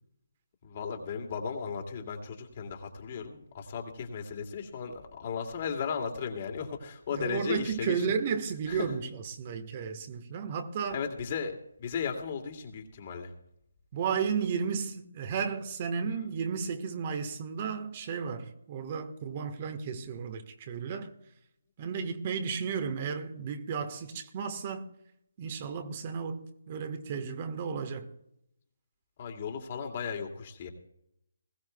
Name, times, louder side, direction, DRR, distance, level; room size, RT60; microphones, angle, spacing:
voice 1, 0.6-8.1 8.7-8.9 10.9-13.3 29.2-30.7, left 6 dB, 40° left, 2.4 m, -36 dB
voice 2, 7.1-11.0 13.9-21.1 21.8-24.9 25.4-28.1, right 6 dB, 35° right, 1.3 m, -33 dB
20.5 x 16.0 x 2.3 m
figure-of-eight pair, 150°, 0 cm